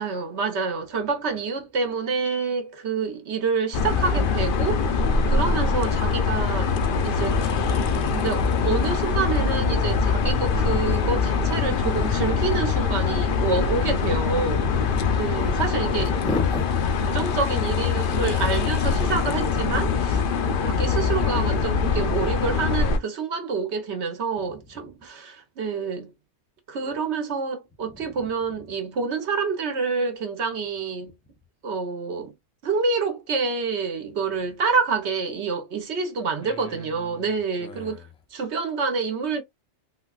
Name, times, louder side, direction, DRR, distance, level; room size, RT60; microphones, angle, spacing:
voice 1, 0.0-6.7 7.0-7.4 8.1-14.8 15.1-16.2 17.1-20.2 20.6-26.1 26.7-31.1 31.6-32.3 32.6-39.4, right 4 dB, 75° right, 1.2 m, -27 dB
sound 1, 3.7-23.0, left 5 dB, 60° left, 0.7 m, -23 dB
voice 2, 14.8-15.1 16.1-16.8 27.9-28.1 36.4-36.8 37.1-37.2 37.6-38.0, left 2 dB, 5° left, 0.4 m, -33 dB
3.8 x 2.3 x 2.3 m
omnidirectional pair, 1.1 m